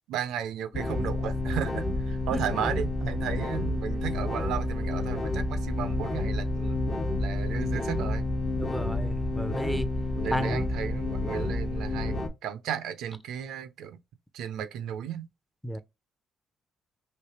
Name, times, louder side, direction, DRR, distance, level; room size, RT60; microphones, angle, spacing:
voice 1, 0.1-6.8 7.2-8.2 10.2-14.0 14.3-15.3, right 9 dB, 85° right, 0.5 m, -34 dB
sound 1, 0.7-12.3, left 2 dB, 50° left, 1.1 m, -29 dB
voice 2, 8.6-9.9 10.3-10.6 15.6-15.8, equal, 5° left, 0.5 m, -32 dB
3.2 x 2.8 x 2.9 m
cardioid pair, 90°, 0 cm